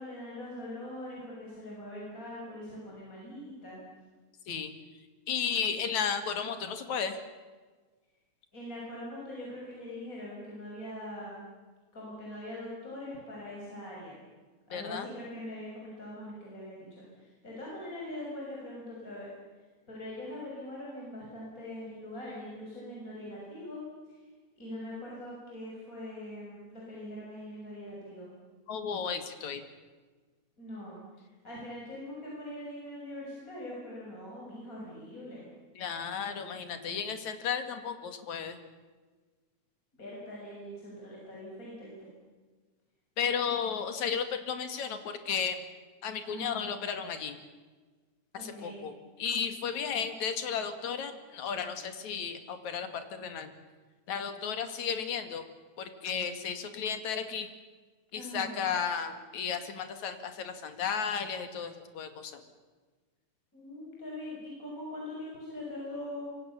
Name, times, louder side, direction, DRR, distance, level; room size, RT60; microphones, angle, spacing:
voice 1, 0.0-3.8 8.5-11.4 11.9-14.2 14.7-19.3 19.9-24.2 24.6-28.3 30.6-35.4 40.0-42.1 46.3-46.7 48.4-48.8 58.1-58.6 63.5-66.2, left 1 dB, 25° left, -4 dB, 7.2 m, -42 dB
voice 2, 5.3-7.2 14.7-15.1 28.7-29.6 35.8-38.6 43.2-45.6 46.0-47.4 48.4-48.9 49.2-53.5 54.1-55.4 55.8-57.5 58.1-62.4, left 7 dB, 70° left, 8 dB, 3.4 m, -34 dB
26.5 x 24.0 x 7.2 m, 1.4 s
omnidirectional pair, 3.5 m